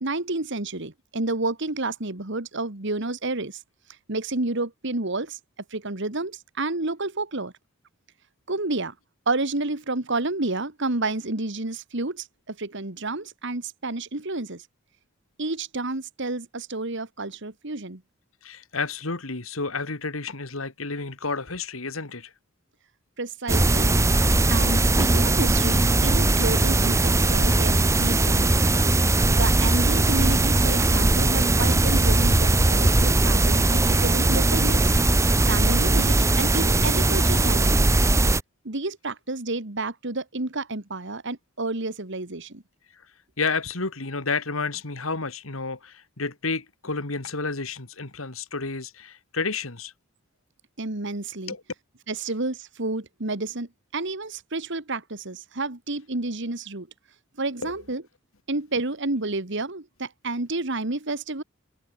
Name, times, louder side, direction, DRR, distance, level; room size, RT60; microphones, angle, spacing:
voice 1, 0.0-3.6 4.1-5.4 5.7-7.5 8.5-8.9 9.3-14.7 15.4-18.0 23.2-24.0 24.5-28.9 29.3-34.9 35.4-37.9 38.6-42.6 50.8-51.5 52.1-56.9 57.4-58.0 58.5-61.4, right 2 dB, 60° right, 2.1 m, -30 dB
voice 2, 18.4-22.3 42.9-43.1 43.4-49.9 51.5-51.6 52.2-52.3 57.6-57.9, left 4 dB, 85° left, 2.5 m, -31 dB
sound 1, 23.5-38.4, right 2 dB, 15° right, 0.6 m, -20 dB
head